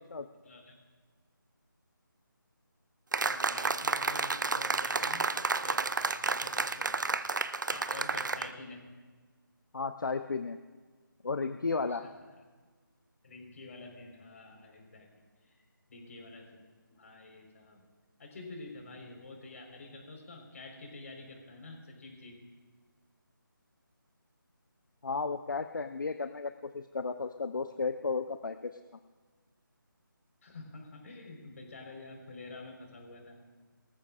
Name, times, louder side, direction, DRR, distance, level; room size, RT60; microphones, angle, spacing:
voice 1, 0.4-0.7 3.1-7.3 7.7-8.9 11.9-12.1 13.2-16.6 17.0-17.9 18.2-22.5 30.4-33.4, left 2 dB, 40° left, 1 dB, 4.5 m, -48 dB
sound 1, 3.1-8.5, right 4 dB, 60° right, 0.8 m, -31 dB
voice 2, 9.7-10.6 11.2-12.0 25.0-28.7, left 4 dB, 60° left, 9 dB, 0.8 m, -33 dB
24.0 x 14.5 x 2.5 m, 1.4 s
figure-of-eight pair, 160°, 12 cm